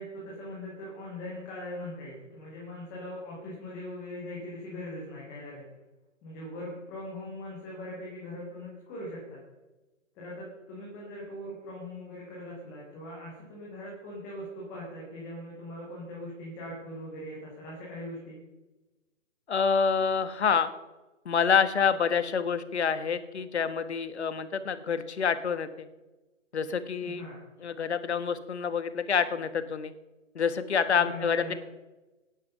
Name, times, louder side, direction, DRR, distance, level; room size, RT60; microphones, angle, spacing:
voice 1, 0.0-5.6 6.2-9.4 10.1-18.4 27.0-27.4 30.9-31.5, left 1 dB, 5° left, -5 dB, 0.5 m, -41 dB
voice 2, 19.5-20.7 21.2-25.9 26.5-27.2 27.6-29.9 30.3-31.5, left 6 dB, 55° left, 12 dB, 1.4 m, -27 dB
17.5 x 10.5 x 5.4 m, 1.1 s
figure-of-eight pair, 140°, 39 cm